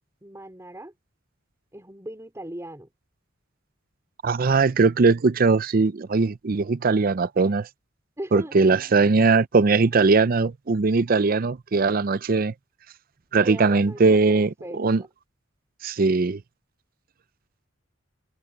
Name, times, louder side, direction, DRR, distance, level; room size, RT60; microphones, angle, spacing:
voice 1, 0.2-0.9 1.7-2.9 8.2-8.5 13.4-15.1, right 1 dB, 15° right, 4.2 m, -38 dB
voice 2, 4.2-7.7 8.3-12.5 13.3-15.0 15.8-16.4, right 4 dB, 50° right, 0.5 m, -20 dB
head